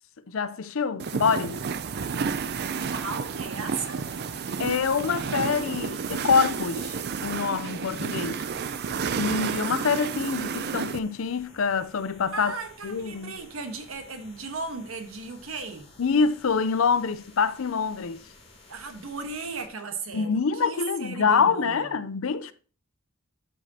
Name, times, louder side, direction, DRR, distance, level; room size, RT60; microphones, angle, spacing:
voice 1, 0.3-1.6 4.6-8.4 9.1-12.5 12.8-13.4 16.0-18.2 20.1-22.5, left 5 dB, 65° left, 0.5 m, -25 dB
sound 1, 1.0-11.0, right 6 dB, 50° right, 0.4 m, -31 dB
sound 2, 1.9-19.7, left 2 dB, 30° left, 2.8 m, -53 dB
voice 2, 2.8-4.2 12.3-15.9 18.7-21.9, right 4 dB, 70° right, 1.3 m, -36 dB
12.5 x 5.1 x 2.8 m
head